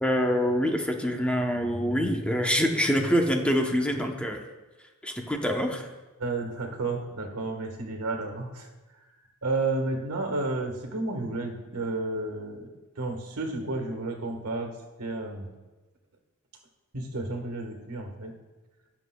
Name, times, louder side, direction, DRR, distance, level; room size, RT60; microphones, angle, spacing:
voice 1, 0.0-4.4 5.0-5.9, equal, 5° left, 2 dB, 0.8 m, -25 dB
voice 2, 6.2-8.7 9.4-12.7 13.0-14.7 15.0-15.5 16.9-18.3, right 2 dB, 85° right, 3 dB, 1.5 m, -31 dB
17.0 x 7.1 x 2.3 m, 1.2 s
head